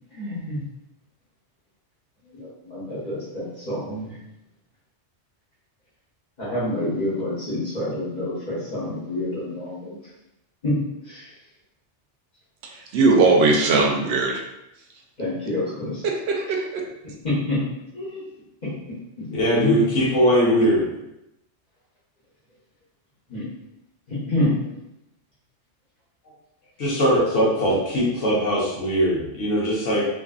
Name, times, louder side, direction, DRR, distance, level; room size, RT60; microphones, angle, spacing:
voice 1, 0.1-0.6 2.3-4.2 6.4-10.0 10.6-10.7 11.0-11.3 15.2-15.9 17.2-17.6 17.9-18.2 18.6-18.7 19.2-19.3 19.5-19.8 20.6-20.7 23.3-23.5 24.1-24.5, left 1 dB, 40° left, -10 dB, 1.1 m, -27 dB
voice 2, 12.9-14.3 16.0-16.8, right 3 dB, 65° right, 0 dB, 0.7 m, -19 dB
voice 3, 19.3-20.8 26.8-30.0, equal, 85° left, -7 dB, 1.1 m, -20 dB
2.6 x 2.5 x 2.3 m, 0.89 s
omnidirectional pair, 1.3 m